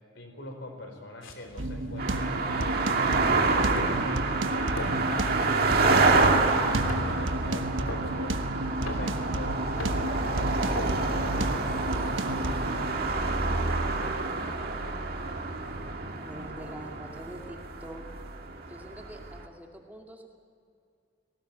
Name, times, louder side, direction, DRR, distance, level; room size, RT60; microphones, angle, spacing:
voice 1, 0.0-12.9 13.8-15.1, left 1 dB, 60° left, 4 dB, 4.7 m, -43 dB
sound 1, 1.2-11.9, equal, 80° left, 3.1 m, -40 dB
sound 2, 1.6-12.9, right 1 dB, 75° right, 1.2 m, -32 dB
sound 3, 2.0-19.4, right 3 dB, 50° right, 2.0 m, -28 dB
voice 2, 16.2-18.1 18.7-20.3, equal, 10° right, 1 dB, 2.4 m, -45 dB
20.0 x 18.0 x 9.1 m, 2.4 s
head